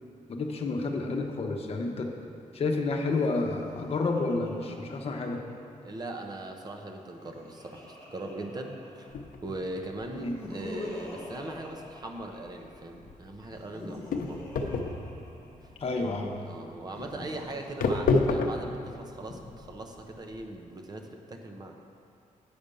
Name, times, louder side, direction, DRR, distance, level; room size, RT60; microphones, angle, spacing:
voice 1, 0.3-2.1 2.5-5.4 10.1-10.3 15.8-16.4, left 3 dB, 45° left, 1 dB, 0.9 m, -30 dB
Laughter, 3.0-5.8 6.9-9.4 10.1-12.8 13.5-15.9 16.8-18.9, left 1 dB, 20° left, 1.3 m, -45 dB
voice 2, 5.8-14.5 15.6-21.8, right 2 dB, 30° right, 3 dB, 0.6 m, -40 dB
sound 1, 9.1-20.5, left 3 dB, 80° left, 0.7 m, -32 dB
8.6 x 5.1 x 6.8 m, 2.4 s
wide cardioid pair, 170°, 14 cm